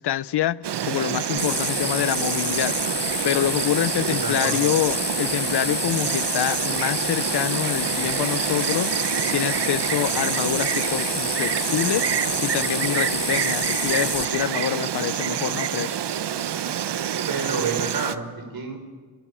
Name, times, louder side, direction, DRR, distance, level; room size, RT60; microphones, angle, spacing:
voice 1, 0.0-2.8 3.2-16.0, left 12 dB, 75° left, 0.7 m, -26 dB
Insect, 0.6-18.2, right 9 dB, 75° right, 1.2 m, -27 dB
sound 1, 1.4-14.2, left 4 dB, 25° left, 1.4 m, -29 dB
voice 2, 4.0-4.7 17.3-18.8, right 4 dB, 55° right, 6.2 m, -29 dB
29.5 x 25.5 x 7.4 m
wide cardioid pair, 105°, 41 cm